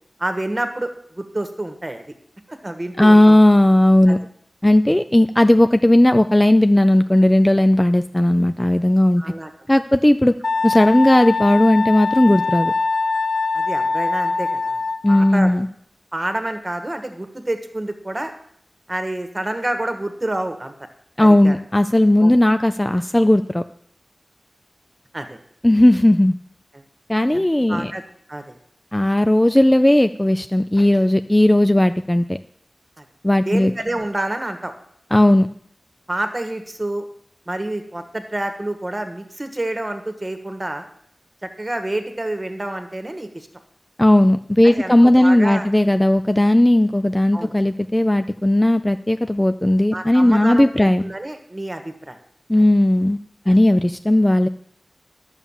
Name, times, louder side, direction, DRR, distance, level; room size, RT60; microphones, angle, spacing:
voice 1, 0.2-2.0 2.5-3.4 4.1-4.2 9.2-9.5 13.5-14.8 15.1-15.5 16.1-18.3 18.9-20.7 21.2-21.6 22.2-22.4 25.1-25.4 26.7-26.8 27.3-28.0 28.3-28.6 33.0-33.1 33.4-34.7 36.1-37.1 37.5-40.8 41.4-43.5 44.6-45.7 47.3-47.5 49.9-52.2 52.6-52.7 53.4-53.6, right 1 dB, 25° right, 7 dB, 1.5 m, -28 dB
voice 2, 3.0-4.2 4.6-9.2 9.7-10.3 10.6-12.7 15.0-15.7 21.2-23.6 25.6-26.4 27.1-27.9 28.9-32.4 33.2-33.7 35.1-35.5 44.0-51.0 52.5-53.2 53.5-54.5, left 1 dB, 15° left, 9 dB, 0.4 m, -15 dB
Wind instrument woodwind instrument, 10.4-15.4, left 4 dB, 65° left, 0.8 m, -23 dB
10.5 x 7.1 x 7.3 m, 0.66 s
wide cardioid pair, 80°, 0 cm